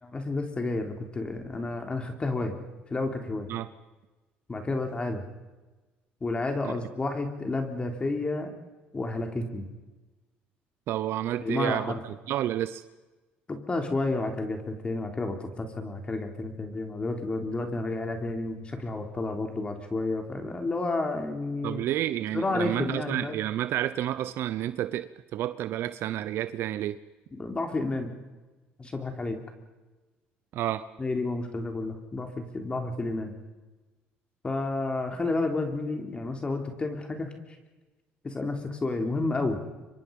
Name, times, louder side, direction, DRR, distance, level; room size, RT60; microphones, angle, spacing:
voice 1, 0.0-2.6 2.9-3.5 4.5-5.2 6.2-8.5 8.9-9.7 11.4-12.0 13.5-21.8 22.3-23.4 27.3-28.1 28.8-29.4 31.0-33.3 34.4-37.3 38.2-39.6, left 2 dB, 25° left, 4 dB, 3.5 m, -31 dB
voice 2, 10.9-11.9 12.3-12.8 21.6-27.0 30.5-30.8, right 12 dB, 65° right, 14 dB, 0.8 m, -30 dB
25.5 x 23.0 x 5.4 m, 1.2 s
supercardioid pair, 90°, 4 cm